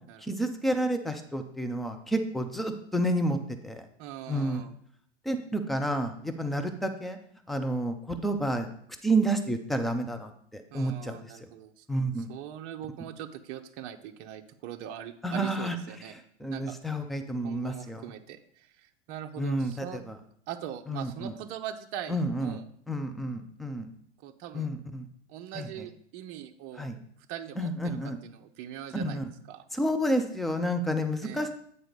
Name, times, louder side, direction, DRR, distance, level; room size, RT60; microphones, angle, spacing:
voice 1, 0.2-3.4 3.6-3.8 4.3-4.6 5.3-7.2 7.5-8.7 9.0-11.2 11.9-12.3 15.2-15.8 16.4-18.0 19.4-20.0 20.9-21.3 22.1-22.6 22.9-23.9 24.5-25.1 25.6-25.7 26.8-27.0 27.6-28.2 28.9-29.2 29.7-31.5, right 1 dB, ahead, 7 dB, 0.3 m, -30 dB
voice 2, 4.0-4.7 10.7-11.9 12.2-16.2 16.5-16.7 17.4-20.0 20.5-22.6 24.2-24.7 25.3-26.9 27.3-29.2 29.5-29.6 31.2-31.4, right 10 dB, 35° right, 6 dB, 0.6 m, -41 dB
8.8 x 4.1 x 5.1 m, 0.66 s
figure-of-eight pair, 95°, 35 cm